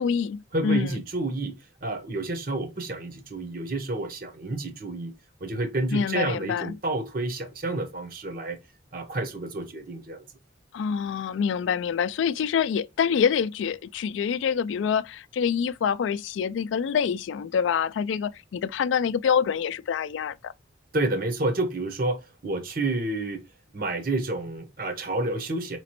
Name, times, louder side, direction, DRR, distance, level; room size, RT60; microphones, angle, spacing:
voice 1, 0.0-0.9 5.9-6.7 10.7-20.5, left 7 dB, 75° left, 0.3 m, -26 dB
voice 2, 0.5-5.1 5.4-8.6 8.9-10.3 20.9-23.4 23.7-25.8, right 2 dB, 45° right, 0.8 m, -29 dB
5.0 x 3.0 x 2.9 m
head